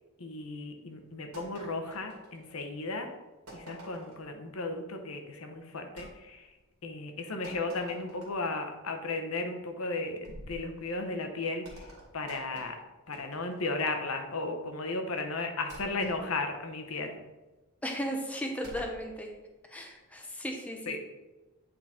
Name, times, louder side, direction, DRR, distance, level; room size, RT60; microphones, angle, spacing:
voice 1, 0.2-3.1 3.5-6.5 6.8-12.8 13.1-17.2 20.9-21.0, left 3 dB, 65° left, 5 dB, 0.9 m, -35 dB
sound 1, 1.3-2.8 3.5-4.3 6.0-6.1 7.4-8.6 10.2-10.7 11.6-13.8 15.7-16.2 18.6-19.0, equal, 75° right, 2.1 m, -49 dB
voice 2, 17.8-19.3 19.6-21.0, equal, 5° left, 2 dB, 0.7 m, -36 dB
8.6 x 3.8 x 4.3 m, 1.1 s
head